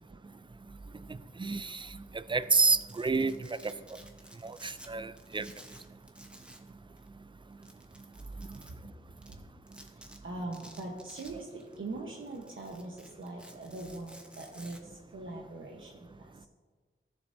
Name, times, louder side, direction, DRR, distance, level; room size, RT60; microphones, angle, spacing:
voice 1, 1.4-1.9 2.3-3.4 4.4-5.5, right 4 dB, 25° right, 14 dB, 0.4 m, -28 dB
Domestic sounds home sounds, 2.4-4.9 5.2-6.7 7.0-7.1 7.6-8.7 9.2-9.3 9.7-10.2 10.5-11.8 12.1-14.8, equal, 5° right, 0.9 m, -53 dB
voice 2, 9.9-16.3, right 2 dB, 70° right, -2 dB, 1.0 m, -42 dB
15.5 x 7.1 x 2.7 m, 1.5 s
wide cardioid pair, 100°, 21 cm